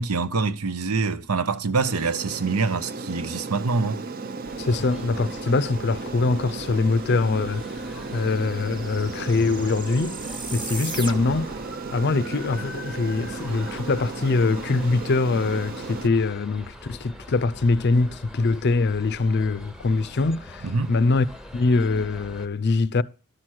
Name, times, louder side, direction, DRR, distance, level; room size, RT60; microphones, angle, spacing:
voice 1, 0.0-4.0 20.6-20.9, right 4 dB, 85° right, 0.8 m, -25 dB
Aircraft, 1.8-16.1, right 3 dB, 45° right, 0.6 m, -35 dB
sound 1, 4.4-22.5, left 1 dB, 5° right, 0.8 m, -43 dB
voice 2, 4.6-7.6 8.1-10.2 10.5-11.5 11.9-21.3 21.5-23.0, left 3 dB, 50° left, 0.5 m, -23 dB
sound 2, 7.1-7.2 7.4-11.6, right 3 dB, 20° right, 1.1 m, -38 dB
11.5 x 5.9 x 6.3 m
head